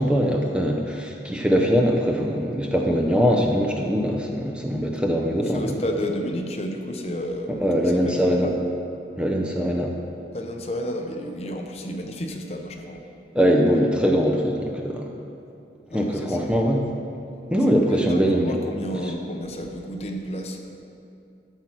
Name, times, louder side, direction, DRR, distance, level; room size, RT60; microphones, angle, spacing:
voice 1, 0.0-5.8 7.5-8.5 9.2-9.9 13.3-15.1 15.9-16.9 17.5-18.6 19.0-19.1, equal, 5° right, 0 dB, 0.6 m, -22 dB
voice 2, 5.5-8.5 10.3-13.0 15.9-16.5 17.9-20.6, equal, 35° left, 3 dB, 0.7 m, -31 dB
13.0 x 4.5 x 6.0 m, 2.7 s
head